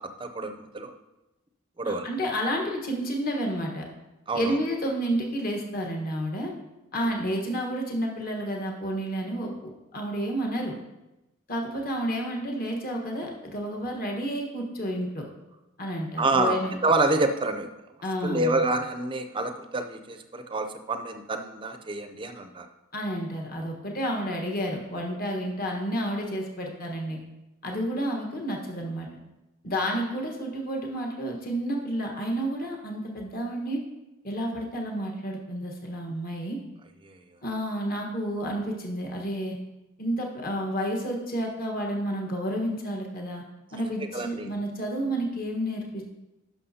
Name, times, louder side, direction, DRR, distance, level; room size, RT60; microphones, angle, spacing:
voice 1, 0.2-0.9 1.8-2.1 4.3-4.6 16.2-17.7 18.2-22.7 37.0-37.2 44.0-44.5, right 2 dB, 25° right, 7 dB, 0.5 m, -27 dB
voice 2, 1.8-3.8 4.3-6.5 6.9-9.5 9.9-10.7 11.5-15.2 15.8-16.8 18.0-18.6 22.9-27.2 27.6-29.1 29.6-33.8 34.2-36.6 37.4-39.6 40.0-43.4 43.7-46.0, equal, 45° left, 0 dB, 1.3 m, -30 dB
11.0 x 6.0 x 2.8 m, 1.0 s
head